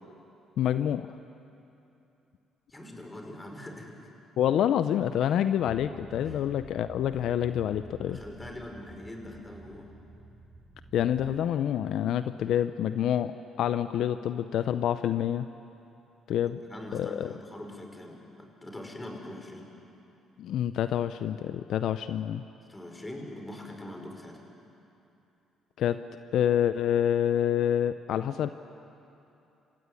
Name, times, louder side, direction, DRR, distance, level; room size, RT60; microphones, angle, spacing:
voice 1, 0.6-1.1 4.4-8.2 10.9-13.3 13.6-15.5 16.3-16.6 16.9-17.3 20.4-22.4 25.8-26.0 26.3-28.5, left 10 dB, 70° left, 11 dB, 0.6 m, -27 dB
voice 2, 2.7-4.1 6.2-6.4 8.1-9.9 16.4-19.7 22.7-24.4, left 1 dB, 15° left, 2 dB, 5.6 m, -43 dB
sound 1, 5.6-11.4, right 2 dB, 20° right, 7.3 m, -49 dB
29.0 x 16.0 x 9.8 m, 2.8 s
supercardioid pair, 65°, 0 cm